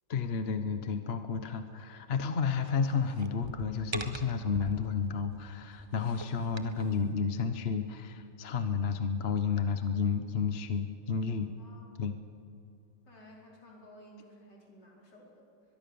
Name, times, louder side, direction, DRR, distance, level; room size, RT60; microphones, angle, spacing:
voice 1, 0.1-11.5 12.0-12.2, left 5 dB, 40° left, 8 dB, 1.1 m, -31 dB
sound 1, 2.6-5.1 5.7-6.9, right 2 dB, 20° right, 0.9 m, -43 dB
voice 2, 11.6-12.1 13.1-15.5, equal, 70° left, -2 dB, 5.3 m, -55 dB
22.5 x 22.5 x 7.0 m, 2.5 s
omnidirectional pair, 1.9 m